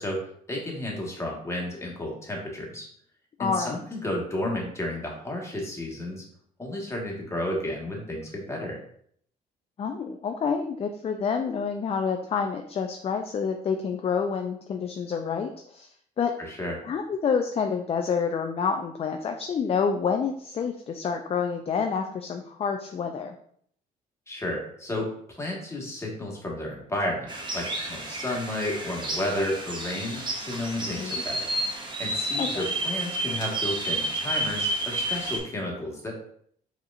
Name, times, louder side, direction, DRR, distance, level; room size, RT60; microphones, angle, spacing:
voice 1, 0.0-2.8 3.4-6.2 6.6-8.8 16.4-16.8 24.3-31.5 32.0-36.1, left 1 dB, 15° left, -2 dB, 1.5 m, -32 dB
voice 2, 3.4-3.8 9.8-15.9 16.2-16.3 16.8-23.3 30.9-31.2 32.4-32.6, left 6 dB, 35° left, 5 dB, 0.4 m, -28 dB
sound 1, 27.3-35.4, right 1 dB, 25° right, 1.0 m, -30 dB
4.7 x 2.9 x 2.5 m, 0.64 s
supercardioid pair, 70°, 17 cm